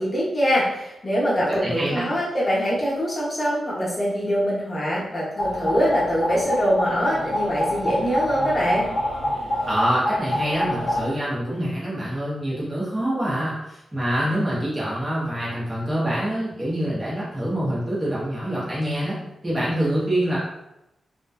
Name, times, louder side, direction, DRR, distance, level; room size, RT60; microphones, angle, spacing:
voice 1, 0.0-8.9, equal, 30° left, -7 dB, 0.8 m, -23 dB
voice 2, 1.4-2.0 9.6-19.2 19.4-20.4, equal, 15° right, -8 dB, 0.6 m, -25 dB
sound 1, 5.4-11.0, left 1 dB, 65° left, 0.6 m, -26 dB
2.5 x 2.1 x 2.2 m, 0.89 s
wide cardioid pair, 150°, 0 cm